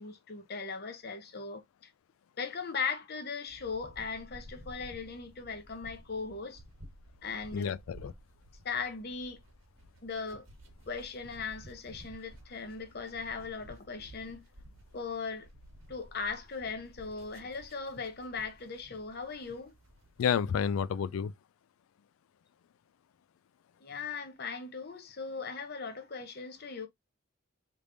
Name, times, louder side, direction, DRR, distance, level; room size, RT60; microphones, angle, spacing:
voice 1, 0.0-1.6 2.4-6.6 7.2-7.7 8.6-9.4 10.0-10.5 10.9-14.5 14.9-15.5 15.9-19.7 23.8-26.9, left 5 dB, 50° left, 0.8 m, -38 dB
sound 1, 3.5-20.9, equal, 75° right, 1.3 m, -54 dB
voice 2, 7.5-8.1 20.2-21.3, left 7 dB, 90° left, 0.3 m, -30 dB
3.4 x 3.3 x 2.5 m
head